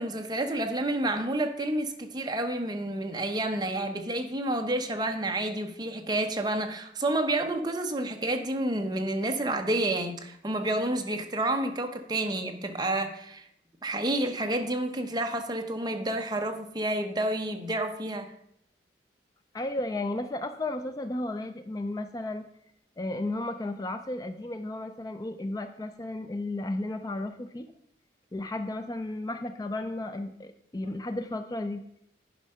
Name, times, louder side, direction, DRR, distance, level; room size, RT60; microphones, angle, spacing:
voice 1, 0.0-13.5 13.8-18.3, right 1 dB, 25° right, 5 dB, 0.8 m, -29 dB
voice 2, 19.5-22.5 23.0-27.7 28.3-31.8, left 2 dB, 20° left, 8 dB, 0.4 m, -34 dB
9.9 x 5.3 x 5.5 m, 0.73 s
head